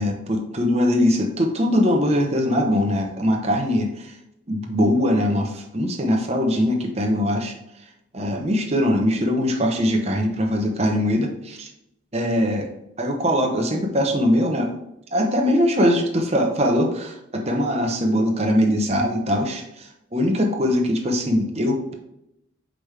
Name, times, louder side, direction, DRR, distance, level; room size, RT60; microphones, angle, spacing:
voice 1, 0.0-4.1 4.5-7.5 8.1-11.7 12.1-12.7 13.0-14.7 15.1-21.9, equal, 30° right, 2 dB, 0.9 m, -21 dB
6.5 x 5.1 x 3.4 m, 0.84 s
head